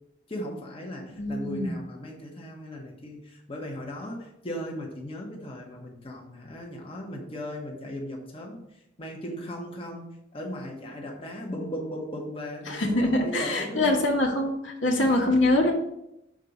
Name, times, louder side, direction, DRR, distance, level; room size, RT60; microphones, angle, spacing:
voice 1, 0.3-8.6 9.0-14.0 15.0-15.4, equal, 30° left, -1 dB, 1.2 m, -37 dB
voice 2, 1.1-1.7 12.7-15.7, left 1 dB, 80° left, 0 dB, 1.5 m, -24 dB
6.4 x 4.1 x 5.3 m, 0.81 s
head